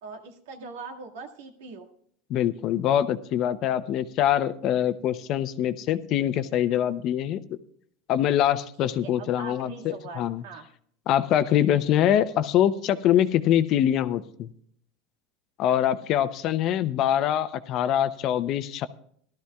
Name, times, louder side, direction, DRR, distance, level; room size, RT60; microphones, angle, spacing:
voice 1, 0.0-1.9 8.8-10.6, right 4 dB, 85° right, 2 dB, 1.9 m, -41 dB
voice 2, 2.3-7.6 8.1-10.4 11.1-14.5 15.6-18.9, left 11 dB, 45° left, 13 dB, 0.6 m, -24 dB
18.0 x 12.5 x 2.3 m, 0.64 s
supercardioid pair, 145°, 0 cm